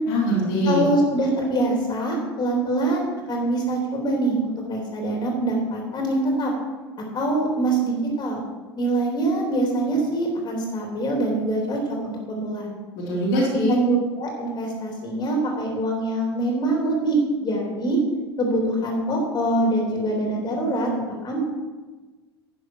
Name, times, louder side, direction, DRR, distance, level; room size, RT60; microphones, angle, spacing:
voice 1, 0.1-0.8 12.9-13.7, equal, 55° left, -4 dB, 3.3 m, -22 dB
voice 2, 0.7-6.5 7.1-8.4 8.8-12.7 13.3-13.4 13.7-18.0 18.4-20.9 21.2-21.4, right 2 dB, 30° left, 0 dB, 3.5 m, -24 dB
11.5 x 9.1 x 4.9 m, 1.2 s
figure-of-eight pair, 75°, 14 cm